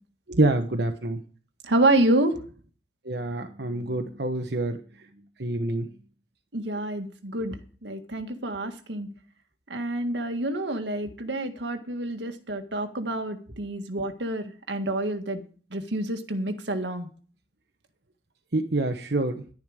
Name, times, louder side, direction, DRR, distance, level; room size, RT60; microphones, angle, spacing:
voice 1, 0.3-1.2 3.0-5.1 5.4-5.9 18.5-19.4, right 2 dB, 70° right, 5 dB, 1.1 m, -26 dB
voice 2, 1.6-2.4 6.5-7.6 7.8-9.1 9.7-15.4 15.7-17.1, right 1 dB, 90° right, 7 dB, 1.7 m, -27 dB
11.5 x 11.0 x 5.0 m, 0.40 s
head